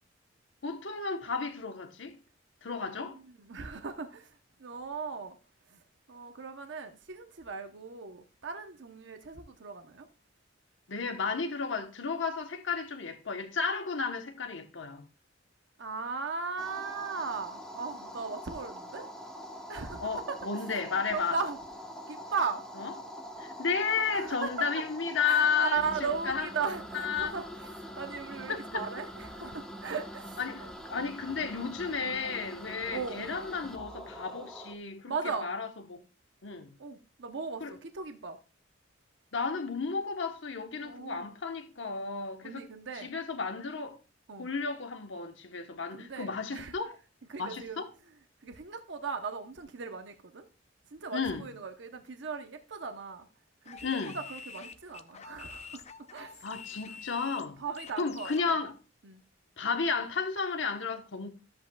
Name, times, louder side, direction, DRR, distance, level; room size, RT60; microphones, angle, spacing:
voice 1, 0.6-2.2 2.6-3.2 10.9-15.1 20.0-21.4 22.8-22.9 23.4-26.5 26.9-27.3 28.5-28.8 30.4-36.0 36.4-36.7 37.6-37.7 39.3-42.7 42.9-44.0 44.4-46.9 47.4-47.9 51.1-51.5 53.8-54.2 56.4-57.6 58.0-58.8 59.6-61.3, left 5 dB, 70° left, 1.1 m, -33 dB
voice 2, 2.7-4.3 4.6-5.4 5.7-5.8 6.1-10.1 15.8-19.1 19.7-20.4 21.1-21.6 22.1-22.6 24.1-24.8 25.2-27.6 28.0-30.7 32.9-33.5 35.1-35.5 36.8-38.4 40.8-41.3 42.4-43.1 44.3-44.5 45.9-46.8 47.3-47.8 48.4-50.5 50.9-53.3 53.6-55.8 56.1-56.5 57.6-58.5 59.0-59.2, right 5 dB, 65° right, 0.8 m, -37 dB
sound 1, 16.6-34.7, equal, 5° left, 1.1 m, -44 dB
sound 2, 53.7-58.5, left 6 dB, 35° left, 0.6 m, -47 dB
13.0 x 7.9 x 2.3 m
head